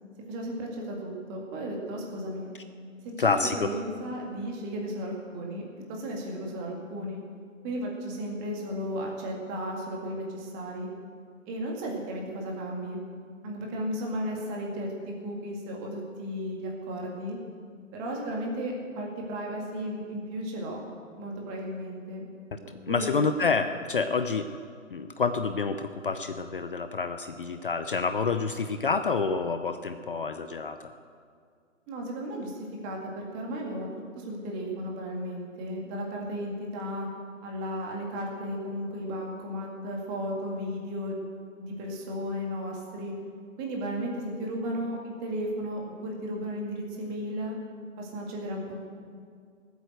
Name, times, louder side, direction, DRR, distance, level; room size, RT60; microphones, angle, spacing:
voice 1, 0.3-2.5 3.2-5.6 5.9-7.2 7.6-10.9 11.5-13.0 13.4-17.4 17.9-20.8 21.1-22.3 22.9-23.2 31.9-33.9 34.2-37.1 37.4-41.1 41.6-43.1 43.6-47.6 48.0-48.8, equal, 15° right, -1 dB, 2.1 m, -34 dB
voice 2, 3.2-3.8 22.5-22.6 22.9-24.5 24.9-30.8, left 4 dB, 40° left, 9 dB, 0.7 m, -28 dB
19.0 x 8.3 x 7.8 m, 2.2 s
figure-of-eight pair, 150°, 39 cm